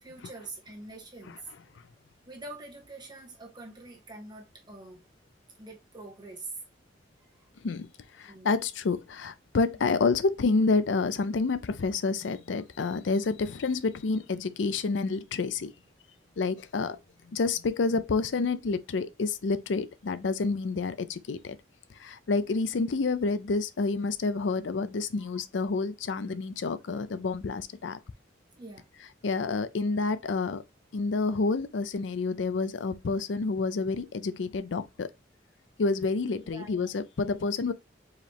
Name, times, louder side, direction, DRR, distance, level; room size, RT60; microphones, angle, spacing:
voice 1, 0.0-1.5 2.3-5.0 5.6-6.5 8.3-8.5 25.2-25.4 28.6-28.9 36.3-36.9, right 2 dB, 25° right, 1.4 m, -45 dB
voice 2, 8.2-15.7 16.4-17.0 17.3-21.6 22.0-28.0 29.2-30.6 30.9-35.1 35.8-37.7, left 4 dB, 75° left, 0.5 m, -28 dB
4.7 x 3.1 x 3.4 m
head